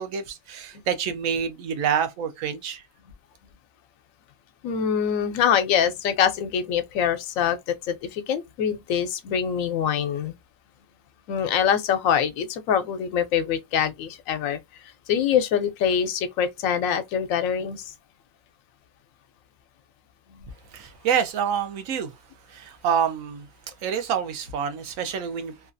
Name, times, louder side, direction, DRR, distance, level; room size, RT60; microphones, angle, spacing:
voice 1, 0.0-2.8 20.7-22.1 22.5-23.5 23.8-25.5, right 8 dB, 85° right, 1.0 m, -27 dB
voice 2, 4.6-10.3 11.3-14.6 15.1-17.9 20.3-20.5, left 8 dB, 85° left, 1.0 m, -24 dB
3.0 x 2.3 x 2.5 m
omnidirectional pair, 1.4 m